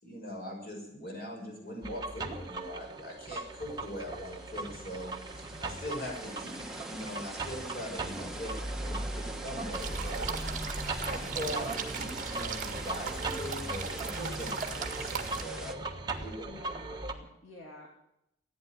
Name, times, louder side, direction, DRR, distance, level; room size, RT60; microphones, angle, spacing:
voice 1, 0.0-8.5 9.4-10.3 11.0-15.8 16.2-16.6, equal, 50° left, 0 dB, 5.9 m, -41 dB
sound 1, 1.8-17.1, right 2 dB, 20° right, 1.3 m, -39 dB
sound 2, 2.8-2.9 3.1-15.7, right 1 dB, 5° right, 1.1 m, -44 dB
voice 2, 8.6-9.0 16.5-17.9, left 2 dB, 75° left, -2 dB, 2.9 m, -51 dB
sound 3, 9.7-15.4, right 5 dB, 40° right, 1.8 m, -38 dB
15.0 x 9.5 x 9.5 m, 0.82 s
head